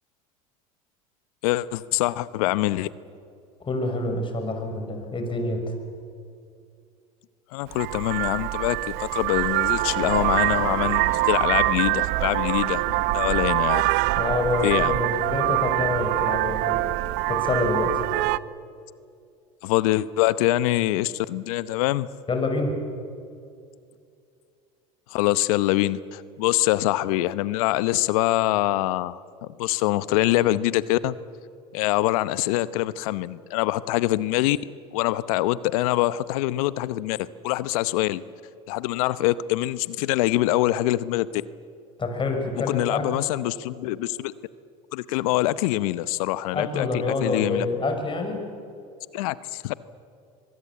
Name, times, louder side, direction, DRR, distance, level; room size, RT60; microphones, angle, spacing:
voice 1, 1.4-2.9 7.5-13.8 14.6-15.0 19.6-22.1 25.1-29.2 29.6-31.2 31.7-34.6 34.9-38.2 38.7-41.4 42.7-44.3 44.9-47.7 49.1-49.7, left 16 dB, 75° left, 17 dB, 0.8 m, -24 dB
voice 2, 3.7-5.6 14.2-16.8 17.3-18.0 22.3-22.8 42.0-43.0 46.5-48.5, left 3 dB, 25° left, 5 dB, 5.7 m, -27 dB
Vehicle horn car horn honking, 7.7-18.4, right 19 dB, 60° right, 0.7 m, -24 dB
24.0 x 22.0 x 8.4 m, 2.4 s
hypercardioid pair, 90°, 18 cm